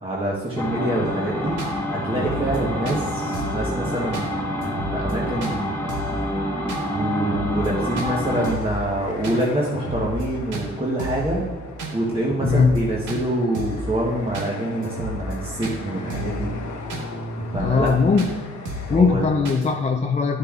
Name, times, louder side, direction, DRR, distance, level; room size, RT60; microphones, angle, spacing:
voice 1, 0.0-1.6 1.9-4.5 4.9-5.8 6.9-11.5 11.9-16.5 17.5-17.9 18.9-19.3, right 1 dB, 20° right, -4 dB, 1.1 m, -26 dB
sound 1, 0.6-8.6, equal, 10° left, 1.6 m, -27 dB
sound 2, 1.0-1.1 1.6-1.7 2.1-2.6 2.9-3.0 3.3-3.6 4.1-4.3 4.6-5.1 5.4-5.6 5.9-6.2 6.7-6.8 7.2-7.7 8.0-8.1 8.4-8.8 9.2-9.5 9.7-10.3 10.5-10.7 11.0-11.3 11.8-11.9 12.3-12.8 13.1-13.2 13.5-13.9 14.3-14.5 14.8-15.4 15.6-15.8 16.1-16.4 16.9-17.0 17.4-17.9 18.2-18.3 18.7-19.0 19.5-19.7, right 1 dB, 85° right, 1.2 m, -32 dB
voice 2, 7.8-8.2 12.4-12.8 17.6-18.3 18.9-20.4, left 4 dB, 25° left, 4 dB, 0.5 m, -20 dB
sound 3, 8.3-19.0, left 3 dB, 75° left, 1.1 m, -38 dB
11.5 x 6.7 x 2.4 m, 1.4 s
cardioid pair, 90°, 30 cm